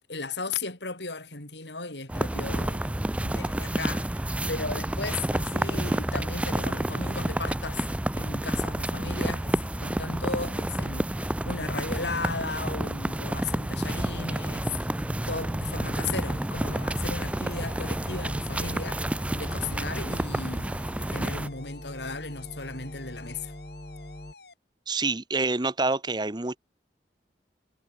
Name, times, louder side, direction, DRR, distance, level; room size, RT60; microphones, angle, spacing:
voice 1, 0.0-7.8 8.1-20.7 21.0-23.5, left 3 dB, 80° left, 6.7 m, -36 dB
sound 1, 2.1-21.5, right 1 dB, 5° right, 0.3 m, -30 dB
sound 2, 13.7-24.3, left 1 dB, 30° left, 1.5 m, -43 dB
sound 3, 16.5-24.5, left 4 dB, 65° left, 3.8 m, -51 dB
voice 2, 24.9-26.6, right 3 dB, 25° right, 1.0 m, -27 dB
head